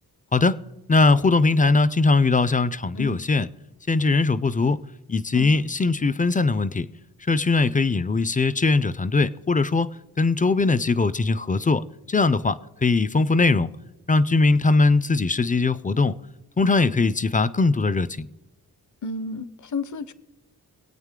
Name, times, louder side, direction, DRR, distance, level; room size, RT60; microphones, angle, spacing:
voice 1, 0.9-3.5 3.9-4.8 5.1-6.9 7.3-9.9 10.2-13.7 14.1-16.2 16.6-18.3, left 3 dB, 25° left, 0.4 m, -20 dB
voice 2, 19.0-20.1, left 3 dB, 50° left, 0.7 m, -31 dB
23.0 x 8.9 x 3.7 m
wide cardioid pair, 160°, 37 cm